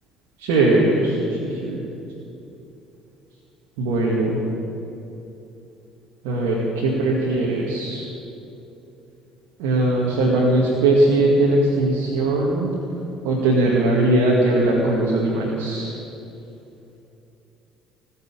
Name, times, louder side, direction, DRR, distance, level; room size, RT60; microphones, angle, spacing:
voice 1, 0.4-1.8 3.8-4.4 6.2-8.1 9.6-12.7 13.2-15.9, right 2 dB, 75° right, -3 dB, 2.1 m, -20 dB
19.0 x 6.8 x 8.8 m, 2.9 s
hypercardioid pair, 70°, 0 cm